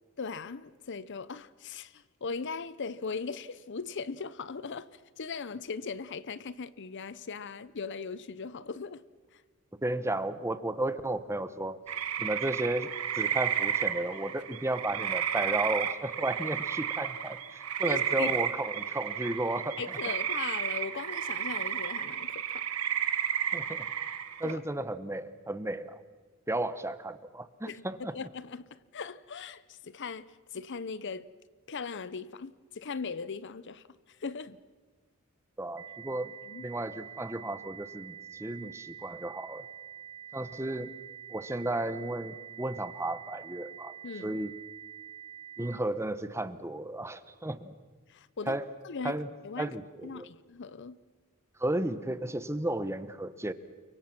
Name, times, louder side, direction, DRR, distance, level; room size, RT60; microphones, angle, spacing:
voice 1, 0.2-9.0 9.3-9.4 17.8-18.3 19.8-22.6 24.4-24.6 27.7-27.8 28.1-31.3 31.7-33.8 34.2-34.6 36.5-36.7 44.0-44.4 48.1-48.6 48.8-49.2 49.4-49.7 50.0-51.0, left 5 dB, 55° left, 0.7 m, -39 dB
voice 2, 9.8-11.8 12.2-19.8 23.5-23.8 24.4-26.0 26.5-28.1 35.6-39.6 40.3-40.9 41.3-44.5 45.6-47.7 48.5-48.7 49.0-49.3 49.6-50.3 51.6-53.5, right 1 dB, 10° right, 0.9 m, -34 dB
sound 1, 11.9-24.5, right 9 dB, 90° right, 1.5 m, -32 dB
sound 2, 35.8-45.8, right 9 dB, 65° right, 1.3 m, -47 dB
29.5 x 24.0 x 6.0 m
head